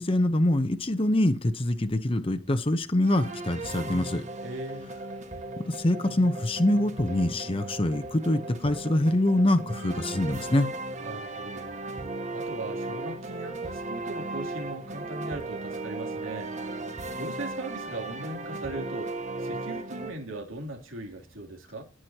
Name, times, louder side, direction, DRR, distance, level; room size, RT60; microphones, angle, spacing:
voice 1, 0.0-4.2 5.6-10.7, left 1 dB, 30° left, 0.9 m, -25 dB
sound 1, 3.0-20.1, right 2 dB, 35° right, 1.6 m, -36 dB
voice 2, 4.4-4.9 11.0-11.7 12.3-16.5 17.2-21.8, right 2 dB, 85° right, 3.2 m, -39 dB
18.0 x 6.3 x 2.9 m
head